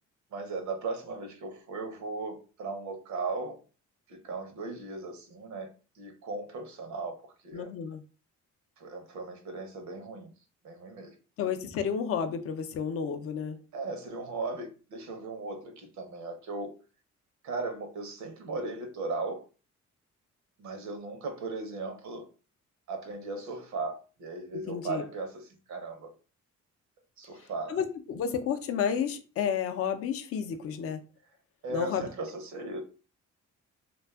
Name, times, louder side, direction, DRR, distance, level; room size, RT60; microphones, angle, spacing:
voice 1, 0.3-3.6 4.1-7.7 8.8-10.3 10.6-11.2 13.7-16.8 17.4-19.4 20.6-22.3 22.9-26.1 27.2-27.8 31.6-32.8, right 3 dB, 70° right, 0.7 m, -37 dB
voice 2, 7.5-8.0 11.4-13.6 24.7-25.0 27.7-31.0 31.7-32.1, left 7 dB, 50° left, 0.4 m, -31 dB
2.5 x 2.3 x 2.2 m
cardioid pair, 90°, 30 cm